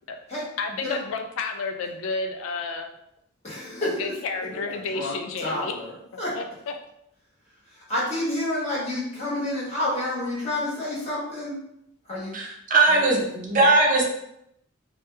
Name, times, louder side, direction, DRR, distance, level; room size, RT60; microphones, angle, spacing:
voice 1, 0.6-2.9 3.8-5.8 6.3-6.7, left 4 dB, 90° left, 5 dB, 0.4 m, -31 dB
voice 2, 3.4-4.1 4.7-6.3 7.7-11.5 12.1-12.4 12.9-13.2, left 1 dB, 35° left, -7 dB, 1.3 m, -29 dB
voice 3, 12.3-14.0, right 2 dB, 40° right, -2 dB, 0.6 m, -20 dB
2.9 x 2.2 x 3.2 m, 0.78 s
head